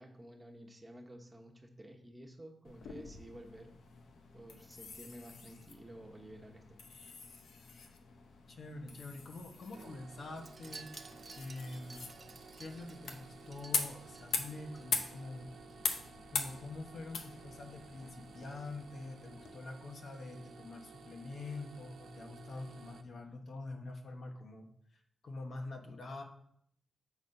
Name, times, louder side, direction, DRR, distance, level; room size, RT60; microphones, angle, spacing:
voice 1, 0.0-3.7 4.3-6.6, right 1 dB, 20° right, 2 dB, 1.3 m, -52 dB
sound 1, 2.6-19.5, left 5 dB, 85° left, 0.8 m, -43 dB
voice 2, 8.5-12.1 12.6-15.5 16.3-24.7 25.2-26.2, left 2 dB, 65° left, 3 dB, 1.1 m, -45 dB
sound 2, 9.7-23.0, right 5 dB, 90° right, 0.6 m, -55 dB
Wind chime, 10.4-14.9 15.2-15.4 15.7-15.8, right 4 dB, 40° right, 0.7 m, -54 dB
6.9 x 4.2 x 5.3 m, 0.70 s
cardioid pair, 90°, 0 cm